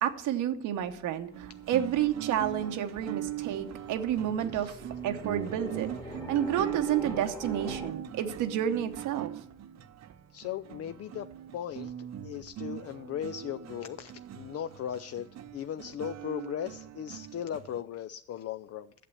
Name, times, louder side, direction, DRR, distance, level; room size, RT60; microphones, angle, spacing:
voice 1, 0.0-4.8 5.0-5.9 6.3-9.3, right 10 dB, 85° right, 7 dB, 1.0 m, -30 dB
sound 1, 0.8-7.9, left 2 dB, 15° left, 1.5 m, -46 dB
sound 2, 1.3-17.8, right 11 dB, 60° right, 0.7 m, -40 dB
voice 2, 10.3-18.9, left 10 dB, 55° left, 10 dB, 0.5 m, -38 dB
8.5 x 6.8 x 8.3 m, 0.73 s
cardioid pair, 90°, 30 cm